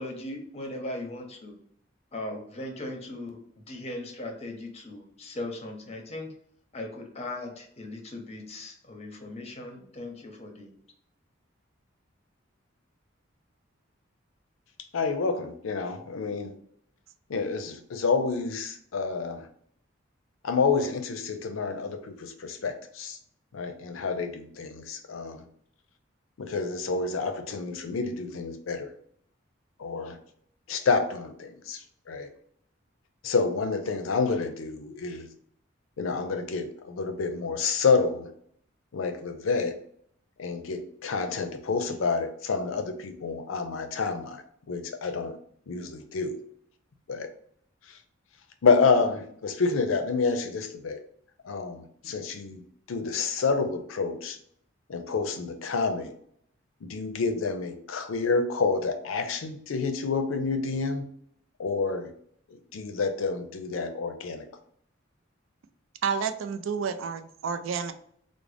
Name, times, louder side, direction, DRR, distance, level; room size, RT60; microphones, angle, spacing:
voice 1, 0.0-1.6 2.1-3.4 3.7-6.3 6.7-10.7, left 1 dB, 30° left, 3 dB, 0.6 m, -38 dB
voice 2, 14.9-16.5 17.3-19.5 20.4-23.2 23.5-25.4 26.4-28.9 29.8-30.2 30.7-32.3 33.2-35.3 36.0-38.3 38.9-39.8 40.4-44.4 44.7-45.4 45.7-46.4 47.1-47.3 47.9-48.0 48.6-51.0 51.4-52.6 52.9-54.4 54.9-56.1 56.8-61.1 61.6-62.1 62.5-64.5, left 4 dB, 90° left, 7 dB, 0.5 m, -28 dB
voice 3, 66.0-67.9, right 6 dB, 80° right, 9 dB, 0.4 m, -30 dB
3.7 x 2.0 x 3.3 m, 0.64 s
head